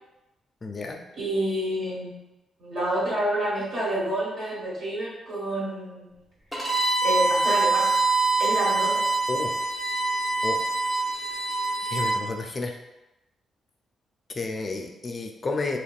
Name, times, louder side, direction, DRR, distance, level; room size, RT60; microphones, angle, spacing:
voice 1, 0.6-1.0 9.3-9.5 10.4-10.6 11.9-12.8 14.3-15.8, left 3 dB, 30° left, 3 dB, 0.3 m, -31 dB
voice 2, 1.2-2.2 2.6-6.1 7.0-7.9 8.4-9.0, right 1 dB, 50° right, -8 dB, 1.4 m, -28 dB
Bowed string instrument, 6.5-12.2, right 3 dB, 5° right, 0.6 m, -24 dB
3.3 x 2.9 x 2.4 m, 0.95 s
cardioid pair, 145°, 0 cm